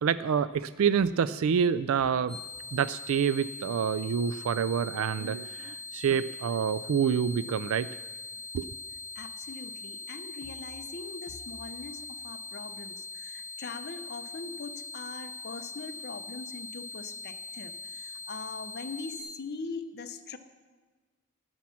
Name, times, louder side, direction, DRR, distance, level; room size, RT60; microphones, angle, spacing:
voice 1, 0.0-2.4 2.7-7.9 8.5-8.7, right 7 dB, 70° right, 16 dB, 0.3 m, -27 dB
sound 1, 2.3-19.2, left 3 dB, 15° right, 3.2 m, -42 dB
voice 2, 9.1-20.4, left 4 dB, 50° left, 8 dB, 0.8 m, -41 dB
17.5 x 7.3 x 5.8 m, 1.3 s
head